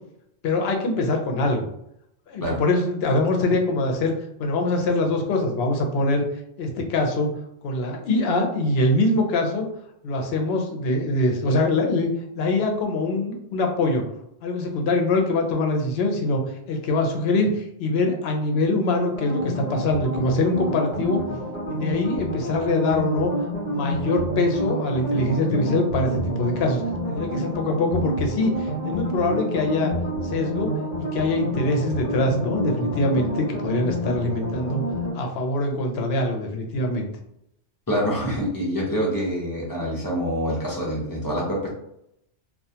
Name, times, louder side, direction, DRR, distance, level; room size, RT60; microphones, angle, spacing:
voice 1, 0.4-1.6 2.3-4.1 4.4-6.2 6.6-7.3 7.6-9.7 10.0-12.1 12.3-14.0 14.4-16.4 16.7-21.2 21.7-23.3 23.7-26.8 27.1-29.9 30.2-30.7 31.0-34.8 35.1-37.1, left 2 dB, 70° left, 3 dB, 0.8 m, -23 dB
sound 1, 19.1-35.1, right 1 dB, 45° left, 0.9 m, -28 dB
voice 2, 37.9-41.7, equal, 25° left, -3 dB, 0.6 m, -26 dB
2.3 x 2.2 x 2.7 m, 0.76 s
omnidirectional pair, 1.1 m